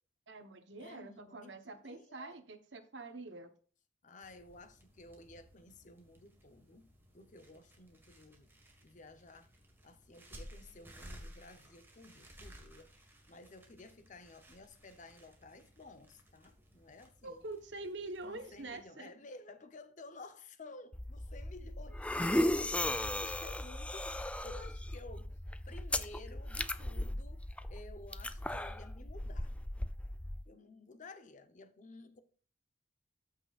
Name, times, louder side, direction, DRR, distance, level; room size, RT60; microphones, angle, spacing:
voice 1, 0.3-3.5 17.2-19.1, right 2 dB, 80° right, 1.1 m, -45 dB
voice 2, 0.8-2.3 4.0-8.5 8.8-9.5 9.8-12.9 13.3-17.4 18.2-22.0 22.8-25.3 25.7-27.4 27.7-29.5 30.5-32.2, left 2 dB, 45° left, 0.9 m, -54 dB
sound 1, 4.2-18.8, equal, 10° right, 1.7 m, -57 dB
sound 2, 20.9-30.4, left 1 dB, 5° left, 0.3 m, -36 dB
13.5 x 6.0 x 2.5 m
head